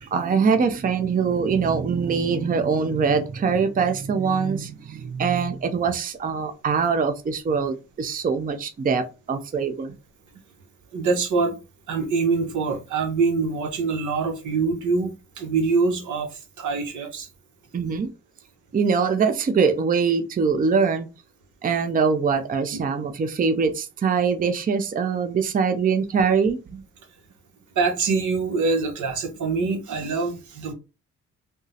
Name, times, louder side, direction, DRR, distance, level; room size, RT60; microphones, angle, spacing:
voice 1, 0.1-9.9 17.7-18.1 18.7-21.1 21.6-26.8, right 5 dB, 30° right, 0.5 m, -23 dB
voice 2, 10.9-11.6 11.9-17.3 22.7-22.8 27.7-30.7, right 4 dB, 80° right, 0.9 m, -24 dB
3.5 x 2.0 x 2.7 m
cardioid pair, 70°, 30 cm